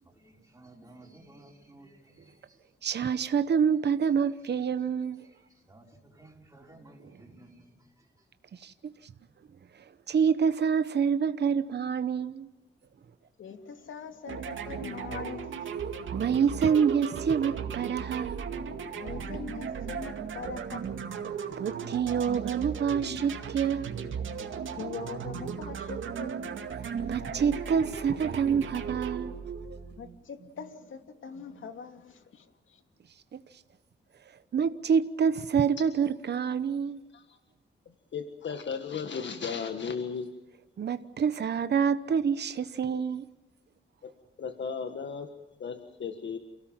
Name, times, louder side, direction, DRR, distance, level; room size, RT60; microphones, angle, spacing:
voice 1, 0.0-2.6 4.3-4.4 5.2-8.3, right 2 dB, 15° right, 5.5 m, -55 dB
voice 2, 2.8-5.3 8.5-8.7 10.1-12.5 16.1-18.4 21.6-23.9 27.1-29.3 33.3-33.4 34.5-37.0 40.8-43.2, right 7 dB, 60° right, 1.0 m, -27 dB
voice 3, 13.4-15.9 18.9-21.1 24.7-26.7 30.0-32.8, left 6 dB, 85° left, 2.5 m, -42 dB
sound 1, 14.3-30.2, right 7 dB, 85° right, 2.2 m, -36 dB
voice 4, 38.1-40.3 44.0-44.1 44.4-45.3 45.6-46.4, left 6 dB, 70° left, 1.8 m, -35 dB
29.0 x 17.5 x 7.5 m
wide cardioid pair, 120°, 20 cm